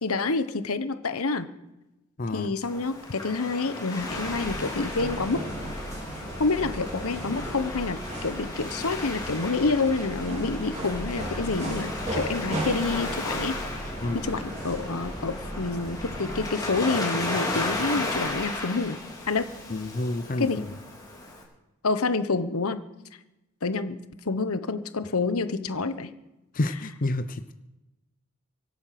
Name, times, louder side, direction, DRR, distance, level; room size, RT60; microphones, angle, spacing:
voice 1, 0.0-1.5 2.3-5.4 6.4-13.6 14.1-19.0 19.3-19.5 20.4-20.6 21.8-22.8 23.6-24.0 24.2-26.1, left 3 dB, 80° left, 11 dB, 1.1 m, -28 dB
voice 2, 2.2-2.5 14.0-14.2 19.7-20.7 26.5-27.5, left 2 dB, 40° left, 10 dB, 0.6 m, -29 dB
Waves surf, 2.6-21.4, left 2 dB, 20° left, 3.6 m, -35 dB
sound 1, 4.0-16.6, right 1 dB, 30° right, 3.0 m, -36 dB
24.0 x 8.7 x 5.9 m, 1.0 s
head